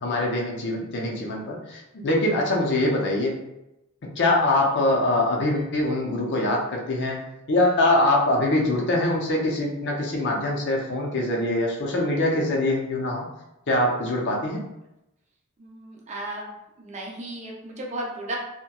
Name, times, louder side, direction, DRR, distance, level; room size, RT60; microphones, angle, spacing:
voice 1, 0.0-3.4 4.2-7.2 7.5-13.3 13.7-14.6, left 1 dB, 55° left, -1 dB, 0.5 m, -23 dB
voice 2, 15.6-16.5 16.8-18.4, right 1 dB, 30° right, -2 dB, 0.5 m, -34 dB
2.8 x 2.1 x 2.2 m, 0.89 s
head